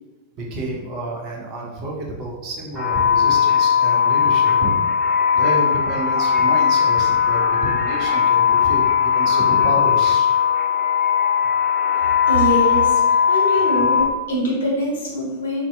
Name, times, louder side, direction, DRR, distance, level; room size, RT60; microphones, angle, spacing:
voice 1, 0.3-4.8 5.3-10.3, right 2 dB, 40° right, -1 dB, 0.5 m, -29 dB
sound 1, 2.7-14.0, left 7 dB, 20° right, 1.3 m, -18 dB
voice 2, 12.3-15.6, equal, 65° left, -2 dB, 0.6 m, -23 dB
2.5 x 2.1 x 2.3 m, 1.2 s
figure-of-eight pair, 90°, 0 cm